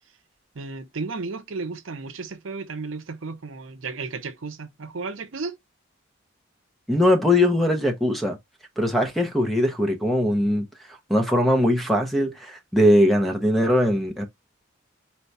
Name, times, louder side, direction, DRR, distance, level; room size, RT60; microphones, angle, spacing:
voice 1, 0.5-5.6, right 4 dB, 80° right, 0.7 m, -33 dB
voice 2, 6.9-8.4 8.8-10.6 11.1-14.3, left 1 dB, ahead, 0.7 m, -20 dB
4.5 x 2.3 x 4.0 m
head